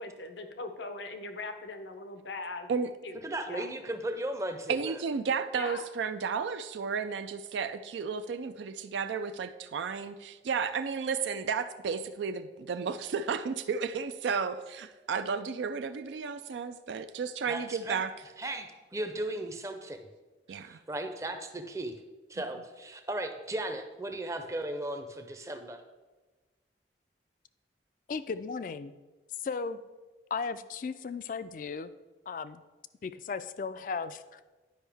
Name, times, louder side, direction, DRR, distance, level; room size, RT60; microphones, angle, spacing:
voice 1, 0.0-2.7 3.0-3.2 3.5-3.7 5.5-5.8, left 3 dB, 80° left, 7 dB, 0.7 m, -40 dB
voice 2, 3.2-5.0 17.5-18.0 18.4-20.0 20.5-21.9 22.3-25.8, right 1 dB, 15° right, 6 dB, 0.5 m, -36 dB
voice 3, 4.7-18.1 20.5-20.8, right 5 dB, 85° right, 9 dB, 0.4 m, -33 dB
voice 4, 28.1-28.9 29.4-29.8 30.3-31.9 32.3-32.6 33.0-34.4, left 5 dB, 45° left, 13 dB, 0.3 m, -36 dB
10.0 x 5.3 x 3.4 m, 1.2 s
head